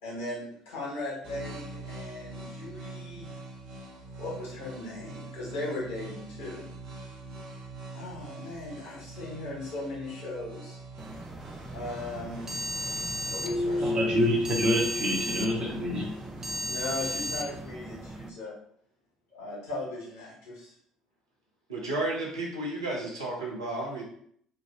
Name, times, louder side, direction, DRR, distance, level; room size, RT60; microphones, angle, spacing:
voice 1, 0.0-3.3 4.2-6.7 7.9-10.8 11.7-12.5 13.1-14.0 16.6-18.5 19.3-20.7, left 2 dB, 60° left, -5 dB, 1.5 m, -38 dB
sound 1, 1.2-17.6, right 3 dB, 50° right, 1.1 m, -44 dB
sound 2, 11.0-18.3, right 1 dB, 15° right, 0.4 m, -36 dB
Keyboard (musical), 13.4-16.2, left 2 dB, 30° left, 0.9 m, -32 dB
voice 2, 13.8-16.1, equal, 30° right, -2 dB, 1.2 m, -27 dB
voice 3, 21.7-24.0, right 2 dB, 80° right, -3 dB, 0.8 m, -32 dB
3.2 x 2.5 x 3.5 m, 0.64 s
figure-of-eight pair, 55°, 2 cm